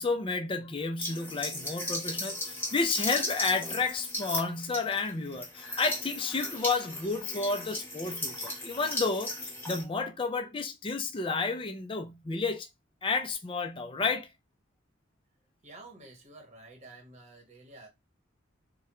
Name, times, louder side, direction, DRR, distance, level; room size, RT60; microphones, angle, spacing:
voice 1, 0.0-12.7 13.0-14.3, left 4 dB, 25° left, 0.5 m, -31 dB
sound 1, 1.0-9.8, left 1 dB, 10° left, 0.9 m, -36 dB
voice 2, 15.6-17.9, right 2 dB, 35° right, 1.0 m, -50 dB
3.4 x 2.2 x 3.0 m
head